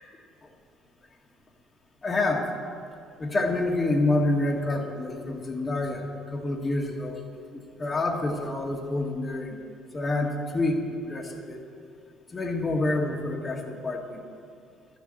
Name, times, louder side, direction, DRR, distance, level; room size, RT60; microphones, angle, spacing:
voice 1, 2.0-2.5 3.2-7.2 7.5-9.6 9.9-11.6 12.3-14.2, left 2 dB, 30° left, 3 dB, 2.0 m, -27 dB
12.5 x 7.0 x 7.6 m, 2.4 s
hypercardioid pair, 60°, 0 cm